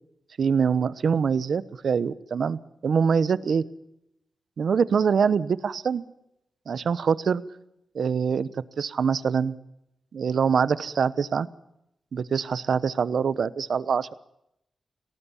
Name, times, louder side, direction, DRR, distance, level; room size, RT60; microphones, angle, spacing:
voice 1, 0.4-3.6 4.6-6.0 6.7-7.4 7.9-8.5 8.8-9.5 10.1-11.5 12.1-14.1, right 6 dB, 60° right, 16 dB, 1.0 m, -24 dB
27.0 x 19.0 x 7.2 m, 0.81 s
wide cardioid pair, 165°, 0 cm